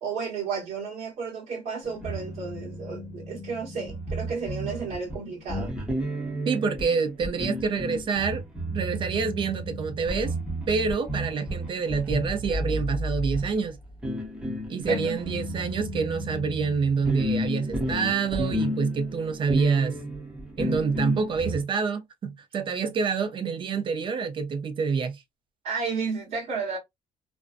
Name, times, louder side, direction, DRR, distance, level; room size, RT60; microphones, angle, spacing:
voice 1, 0.0-5.8 14.9-15.2 25.6-26.8, right 5 dB, 65° right, 1.0 m, -32 dB
sound 1, 1.8-21.6, equal, 5° right, 0.8 m, -32 dB
voice 2, 6.5-8.4 8.7-10.3 10.7-13.8 14.7-20.0 20.6-25.2, right 5 dB, 35° right, 0.5 m, -27 dB
2.5 x 2.1 x 2.3 m
cardioid pair, 135°, 14 cm